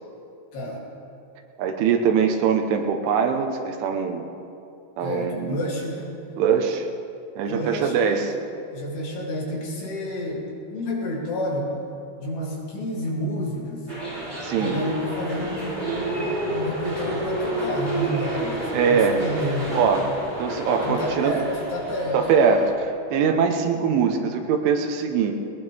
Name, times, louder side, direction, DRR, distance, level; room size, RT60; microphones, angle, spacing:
voice 1, 1.6-4.2 5.0-5.6 6.4-6.9 7.4-8.3 14.4-14.8 18.7-19.2 19.7-20.1 20.4-21.3 22.1-25.3, right 6 dB, 80° right, 5 dB, 3.4 m, -22 dB
voice 2, 5.0-6.1 7.5-8.4 8.7-11.7 12.2-13.9 14.6-19.8 20.8-22.2, equal, 60° left, -4 dB, 4.8 m, -30 dB
sound 1, 13.9-22.7, right 1 dB, 10° right, 3.5 m, -29 dB
20.5 x 19.5 x 3.5 m, 2.7 s
omnidirectional pair, 5.6 m